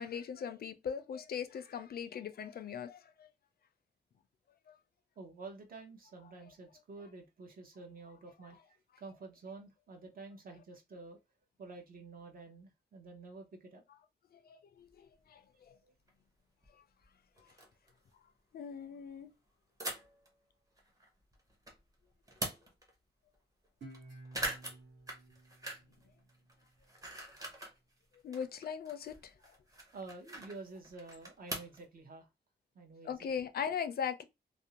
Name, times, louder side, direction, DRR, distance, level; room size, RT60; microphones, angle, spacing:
voice 1, 0.0-3.3 14.5-15.7 18.5-19.3 28.2-29.3 33.1-34.2, left 7 dB, 60° left, 0.4 m, -39 dB
voice 2, 5.2-11.2 11.6-13.8 15.8-15.9 29.9-32.3 32.7-33.3, right 3 dB, 55° right, 0.7 m, -50 dB
sound 1, 14.9-15.0 16.1-16.2 16.6-16.7 17.0-17.1 17.4-17.9 19.8-20.3 20.8-21.8 22.1-22.9 23.3-23.4 23.6-24.0 24.3-26.0 26.3-27.8 28.1-31.8, right 1 dB, 20° right, 0.7 m, -43 dB
Guitar, 23.8-27.0, right 2 dB, 85° right, 1.1 m, -54 dB
2.5 x 2.0 x 2.8 m
wide cardioid pair, 160°, 18 cm